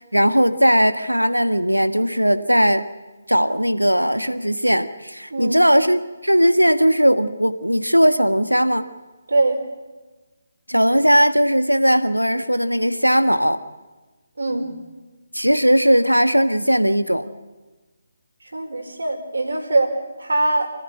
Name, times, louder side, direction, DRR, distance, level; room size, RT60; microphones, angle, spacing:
voice 1, 0.1-2.8 3.3-8.8 10.7-13.6 15.3-17.3, equal, 90° right, 11 dB, 1.4 m, -18 dB
voice 2, 9.3-9.6 14.4-14.7 18.5-20.7, right 2 dB, 65° right, 5 dB, 4.7 m, -22 dB
27.0 x 15.5 x 9.9 m, 1.2 s
figure-of-eight pair, 145°, 0 cm